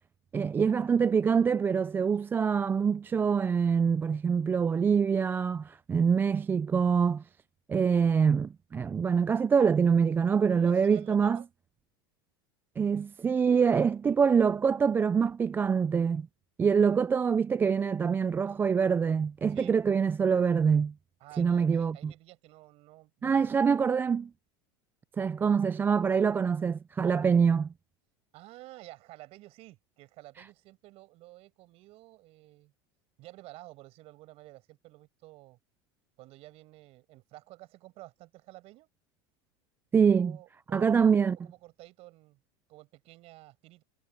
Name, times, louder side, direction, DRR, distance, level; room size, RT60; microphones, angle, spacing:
voice 1, 0.3-7.2 7.7-11.4 12.8-16.3 16.6-20.9 21.4-22.1 23.2-24.3 25.2-27.7 39.9-40.4 40.7-41.4, right 6 dB, 15° right, 0.3 m, -25 dB
voice 2, 10.5-11.5 19.5-19.7 21.2-23.7 28.3-32.7 33.2-35.6 36.2-38.9 40.2-40.9 41.4-42.4 42.7-43.8, right 19 dB, 55° right, 7.9 m, -51 dB
supercardioid pair, 120°, 13 cm